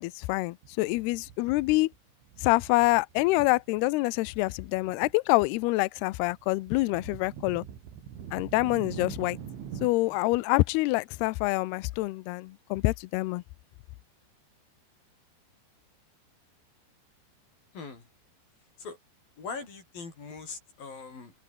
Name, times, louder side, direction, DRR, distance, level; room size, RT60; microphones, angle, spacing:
voice 1, 0.0-1.9 2.4-7.6 8.3-9.4 9.8-13.4, left 21 dB, 85° left, 2.3 m, -26 dB
sound 1, 0.6-2.0 2.2-3.9 4.2-5.1 5.4-9.9, right 8 dB, 80° right, 6.0 m, -43 dB
voice 2, 17.7-18.1 18.8-19.0 19.4-21.3, left 4 dB, 50° left, 8.3 m, -41 dB
omnidirectional pair, 5.4 m